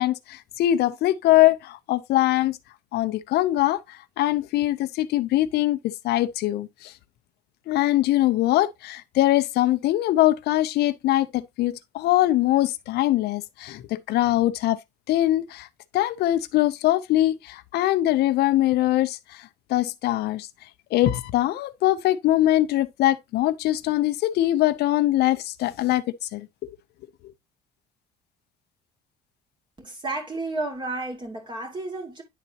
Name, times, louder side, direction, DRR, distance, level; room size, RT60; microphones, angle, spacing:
voice 1, 0.0-2.6 2.9-3.8 4.2-6.9 7.7-14.8 15.1-15.7 15.9-19.4 19.7-20.5 20.9-26.0 26.3-26.5, left 15 dB, 75° left, 0.6 m, -22 dB
voice 2, 29.8-32.2, right 2 dB, 25° right, 2.5 m, -32 dB
10.0 x 4.0 x 2.8 m
cardioid pair, 110°, 17 cm